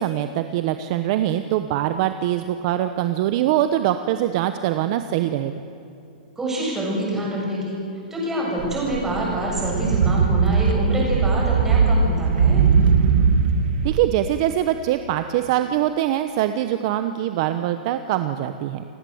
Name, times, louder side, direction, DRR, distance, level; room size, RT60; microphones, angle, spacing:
voice 1, 0.0-5.5 13.8-18.8, right 12 dB, 40° right, 9 dB, 1.0 m, -23 dB
voice 2, 6.4-7.8 8.1-12.7, right 1 dB, 10° right, -3 dB, 7.2 m, -26 dB
sound 1, 8.6-14.0, right 5 dB, 70° right, 2.1 m, -19 dB
29.0 x 18.0 x 8.0 m, 2.8 s
hypercardioid pair, 165°, 5 cm